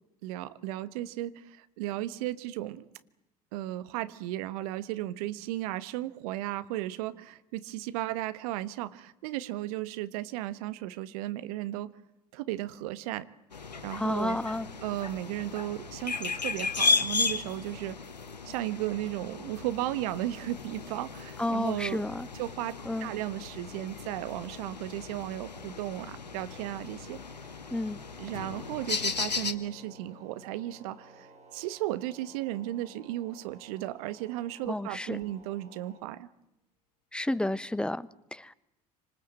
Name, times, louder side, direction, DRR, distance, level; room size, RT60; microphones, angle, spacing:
voice 1, 0.2-2.9 3.5-11.9 12.3-13.3 13.8-14.4 14.8-18.0 18.5-22.0 22.3-22.7 23.0-27.2 28.2-36.3, right 15 dB, 60° right, 14 dB, 1.4 m, -35 dB
sound 1, 13.5-29.5, left 4 dB, 90° left, 1.3 m, -35 dB
voice 2, 14.0-14.7 21.4-22.3 22.9-23.1 27.7-28.0 34.6-35.2 37.1-38.5, left 1 dB, 5° left, 17 dB, 1.0 m, -31 dB
sound 2, 28.3-32.7, left 6 dB, 65° left, 2.1 m, -51 dB
sound 3, 28.4-36.0, right 4 dB, 35° right, 6.7 m, -55 dB
27.5 x 26.0 x 7.7 m, 0.89 s
figure-of-eight pair, 70°, 21 cm